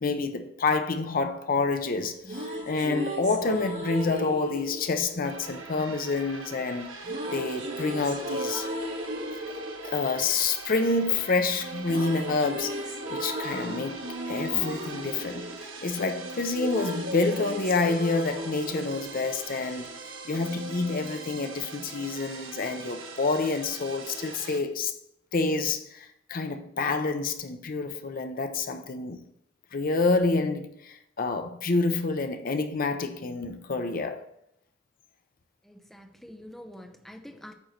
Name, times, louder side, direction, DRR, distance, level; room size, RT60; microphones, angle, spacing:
voice 1, 0.0-6.9 7.3-8.7 9.8-14.0 14.3-19.9 20.2-24.9 25.3-29.2 29.7-34.2, left 3 dB, 45° left, 0.6 m, -28 dB
sound 1, 2.0-6.2 7.0-11.2 11.5-20.0, equal, 65° right, 2.8 m, -36 dB
sound 2, 5.2-24.6, right 4 dB, 80° right, 1.1 m, -41 dB
voice 2, 35.6-37.5, left 1 dB, ahead, 0.6 m, -46 dB
8.8 x 3.1 x 6.4 m
head